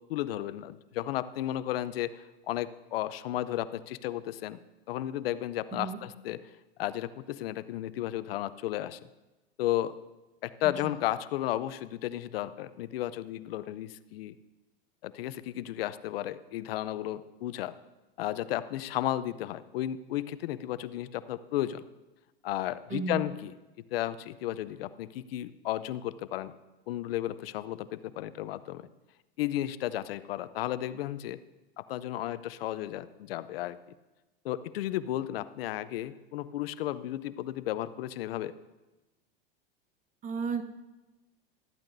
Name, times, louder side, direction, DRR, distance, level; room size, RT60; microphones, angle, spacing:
voice 1, 0.1-4.6 4.9-6.4 6.8-9.0 9.6-10.0 10.4-14.3 15.0-17.8 18.2-21.9 22.4-23.5 23.9-26.5 26.9-28.9 29.4-31.4 31.8-33.8 34.4-38.5, left 13 dB, 80° left, 15 dB, 0.6 m, -33 dB
voice 2, 5.7-6.0 10.6-10.9 22.9-23.2 40.2-40.6, right 5 dB, 25° right, 9 dB, 0.9 m, -34 dB
13.5 x 12.0 x 2.6 m, 1.1 s
supercardioid pair, 115°, 29 cm